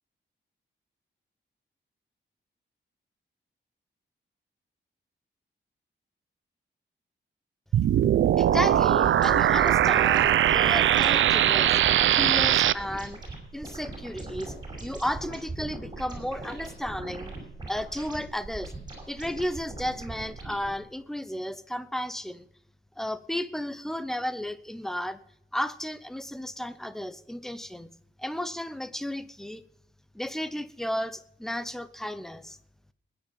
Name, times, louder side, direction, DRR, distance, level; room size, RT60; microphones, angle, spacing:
sound 1, 7.7-12.7, right 11 dB, 80° right, 0.5 m, -21 dB
voice 1, 8.4-11.8 12.1-13.2 13.5-14.5 14.8-17.4 17.7-18.7 19.1-22.5 23.0-25.2 25.5-27.9 28.2-29.6 30.1-32.6, equal, ahead, 13 dB, 0.7 m, -33 dB
sound 2, 8.4-20.7, right 2 dB, 20° right, 5.3 m, -40 dB
20.0 x 10.0 x 5.3 m, 0.72 s
wide cardioid pair, 180°, 20 cm